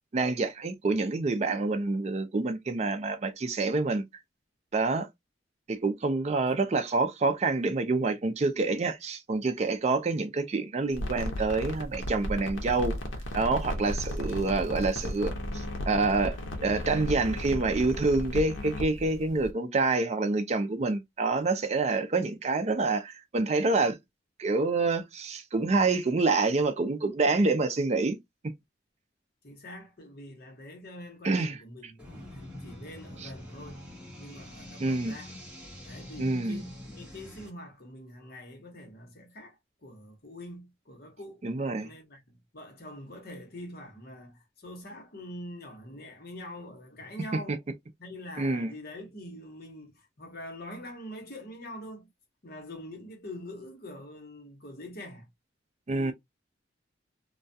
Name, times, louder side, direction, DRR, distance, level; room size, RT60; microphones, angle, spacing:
voice 1, 0.1-4.0 4.7-5.1 5.7-13.0 13.3-24.0 24.4-28.2 31.2-31.6 33.2-33.3 34.8-35.1 36.2-36.6 41.4-41.9 48.4-48.7 55.9-56.1, right 3 dB, 35° right, 0.4 m, -27 dB
sound 1, 10.9-19.5, left 1 dB, 85° left, 0.7 m, -35 dB
voice 2, 29.4-33.8 34.2-35.4 35.8-41.5 41.8-42.2 42.5-47.6 48.0-52.1 52.4-55.3 55.9-56.1, left 1 dB, 50° left, 0.9 m, -44 dB
sound 2, 32.0-37.5, left 1 dB, 5° right, 0.9 m, -45 dB
2.3 x 2.2 x 2.6 m
head